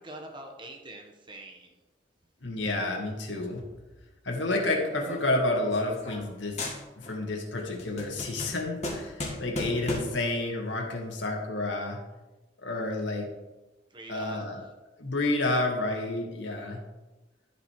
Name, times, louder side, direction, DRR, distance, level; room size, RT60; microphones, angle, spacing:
voice 1, 0.0-1.8 13.9-14.7, right 1 dB, 25° right, 2 dB, 1.5 m, -44 dB
voice 2, 2.4-3.6 4.2-6.6 7.0-12.0 12.6-13.3 14.1-14.6 15.0-16.8, left 2 dB, 90° left, 1 dB, 2.2 m, -30 dB
sound 1, 4.9-6.3 6.6-7.2 7.6-10.3, left 1 dB, 35° left, 2.1 m, -36 dB
14.0 x 5.2 x 4.9 m, 1.1 s
head